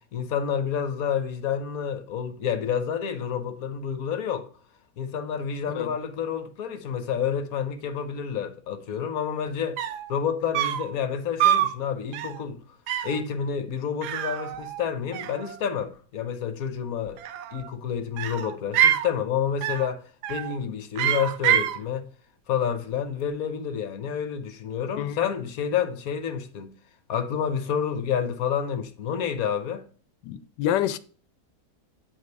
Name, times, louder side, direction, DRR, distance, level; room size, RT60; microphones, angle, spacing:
voice 1, 0.1-4.5 5.0-9.8 10.1-12.6 13.0-17.2 17.5-20.0 20.3-22.1 22.5-26.7 27.1-29.8, left 7 dB, 65° left, 1.2 m, -29 dB
sound 1, 9.5-9.6 9.8-10.1 10.5-10.9 11.4-11.8 12.1-12.4 12.9-13.2 14.0-14.9 15.1-15.8 17.1-17.7 18.2-19.1 19.6-19.9 20.2-20.6 21.0-21.8, right 10 dB, 80° right, 1.2 m, -25 dB
voice 2, 30.2-31.0, left 11 dB, 90° left, 1.2 m, -27 dB
8.3 x 5.1 x 4.0 m
omnidirectional pair, 1.8 m